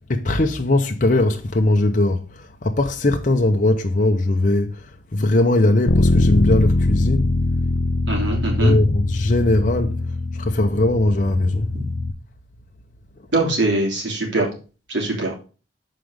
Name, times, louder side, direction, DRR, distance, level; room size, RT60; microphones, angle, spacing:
voice 1, 0.1-7.4 8.6-10.0 10.3-11.7, left 2 dB, 45° left, 0.8 m, -20 dB
Bass guitar, 5.9-12.1, left 2 dB, 90° left, 0.8 m, -22 dB
voice 2, 8.1-8.8 13.3-14.5 14.9-15.3, right 2 dB, 90° right, 3.2 m, -22 dB
7.7 x 5.1 x 5.0 m
head